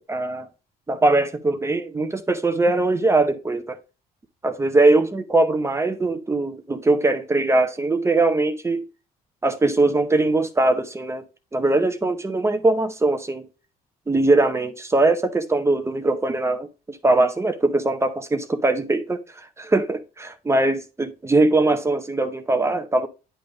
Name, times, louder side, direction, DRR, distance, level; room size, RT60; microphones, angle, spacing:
voice 1, 0.1-0.5 0.9-3.8 4.4-8.8 9.4-11.2 11.5-13.5 14.1-23.1, right 2 dB, 15° right, 0.7 m, -21 dB
10.0 x 3.4 x 3.8 m
cardioid pair, 110°, 17 cm